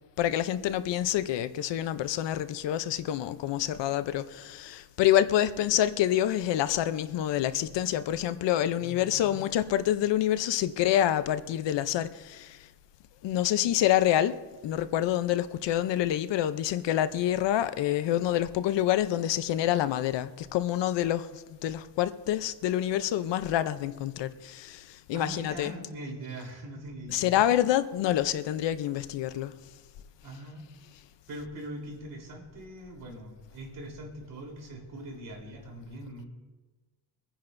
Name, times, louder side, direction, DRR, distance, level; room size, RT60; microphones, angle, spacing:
voice 1, 0.2-12.7 13.2-14.4 14.6-25.7 27.1-29.5, left 12 dB, 75° left, 0.7 m, -27 dB
voice 2, 8.8-9.4 25.1-27.4 30.2-30.6 31.3-36.3, right 1 dB, 50° right, 3.6 m, -42 dB
23.5 x 10.0 x 2.6 m
cardioid pair, 155°, 43 cm